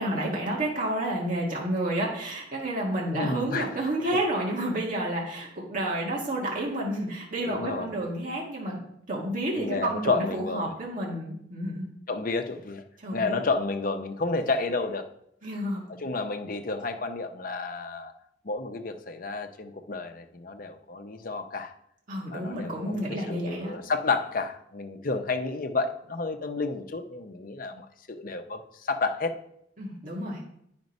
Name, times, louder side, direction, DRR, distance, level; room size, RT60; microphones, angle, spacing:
voice 1, 0.0-11.9 13.0-13.4 15.4-15.8 22.1-23.8 29.8-30.4, right 1 dB, 45° right, -3 dB, 1.9 m, -30 dB
voice 2, 3.1-3.7 7.5-7.9 9.5-10.7 12.1-12.8 13.1-15.1 15.9-18.1 18.4-21.7 22.3-29.3, left 3 dB, 50° left, 7 dB, 0.8 m, -31 dB
9.3 x 5.2 x 5.3 m, 0.72 s
head